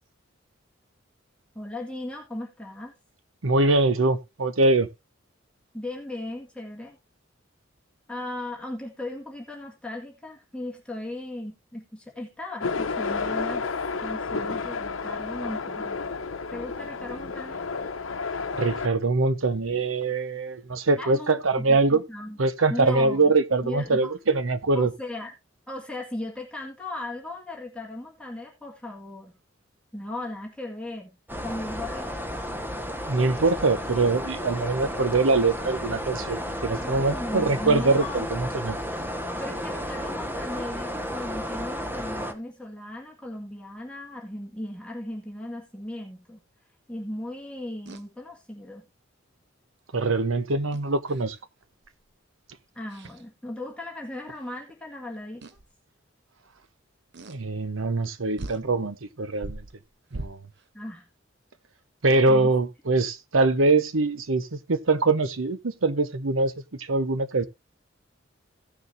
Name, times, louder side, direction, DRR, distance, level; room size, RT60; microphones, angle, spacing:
voice 1, 1.6-2.9 5.7-7.0 8.1-13.6 14.0-16.1 16.5-17.7 21.0-22.4 22.7-23.3 23.6-24.1 24.7-25.3 25.7-29.3 29.9-31.2 31.4-32.2 36.8-38.2 39.4-46.4 46.9-48.9 52.8-55.4 60.7-61.1 62.3-62.5, left 1 dB, 5° left, 1.9 m, -37 dB
voice 2, 3.4-4.9 18.6-22.0 22.4-24.9 33.1-38.8 49.9-51.4 57.3-59.6 60.1-60.4 62.0-66.5 66.8-67.5, right 3 dB, 85° right, 1.0 m, -23 dB
sound 1, 12.6-18.9, left 4 dB, 85° left, 0.9 m, -31 dB
sound 2, 31.3-42.3, equal, 10° right, 1.2 m, -33 dB
sound 3, 47.9-48.1 50.7-51.4 51.8-52.1 52.9-53.2 54.4-54.5 55.4-55.7 57.1-57.4 58.0-58.1 58.4-58.7 59.3-60.7, right 2 dB, 60° right, 0.9 m, -40 dB
16.5 x 6.7 x 2.7 m
head